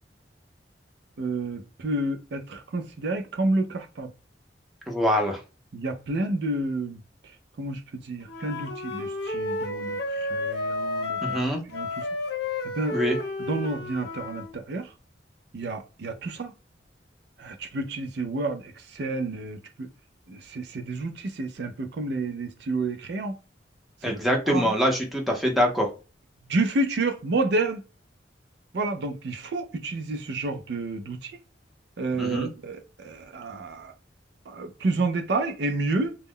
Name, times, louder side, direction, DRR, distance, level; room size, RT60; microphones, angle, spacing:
voice 1, 1.2-4.1 5.7-7.0 7.6-11.4 11.6-12.1 12.6-13.0 13.5-14.9 15.5-16.5 17.4-19.9 20.3-23.4 24.0-24.7 26.5-27.8 28.7-31.4 32.0-33.9 34.5-36.2, right 2 dB, 65° right, 0.4 m, -30 dB
voice 2, 4.9-5.4 11.2-11.6 12.9-13.2 24.0-25.9 32.2-32.5, equal, ahead, 0.6 m, -24 dB
Wind instrument woodwind instrument, 8.2-14.5, left 2 dB, 60° left, 0.7 m, -31 dB
2.2 x 2.1 x 3.4 m
head